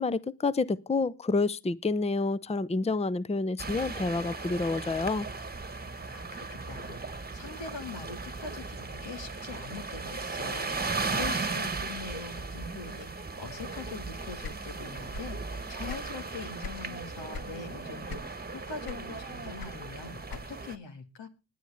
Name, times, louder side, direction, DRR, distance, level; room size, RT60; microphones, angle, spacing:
voice 1, 0.0-5.3, left 3 dB, 15° left, 0.7 m, -28 dB
sound 1, 3.6-20.8, right 3 dB, 20° right, 1.4 m, -37 dB
voice 2, 6.1-21.3, left 5 dB, 80° left, 2.0 m, -43 dB
sound 2, 14.4-15.4 15.7-16.9 17.3-17.6 18.1-18.5 18.8-20.7, left 4 dB, 55° left, 1.2 m, -41 dB
19.5 x 9.3 x 3.5 m
supercardioid pair, 40°, 43 cm